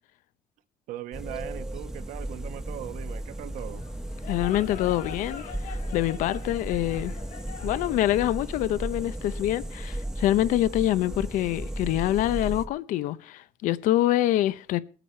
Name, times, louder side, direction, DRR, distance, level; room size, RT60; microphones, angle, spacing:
voice 1, 0.9-3.8, right 13 dB, 85° right, 1.2 m, -39 dB
sound 1, 1.1-12.7, right 1 dB, 5° right, 1.0 m, -35 dB
sound 2, 3.6-9.4, left 8 dB, 65° left, 1.6 m, -44 dB
voice 2, 4.3-7.1 7.6-14.8, left 14 dB, 85° left, 0.7 m, -25 dB
21.5 x 9.1 x 4.4 m
cardioid pair, 160°, 13 cm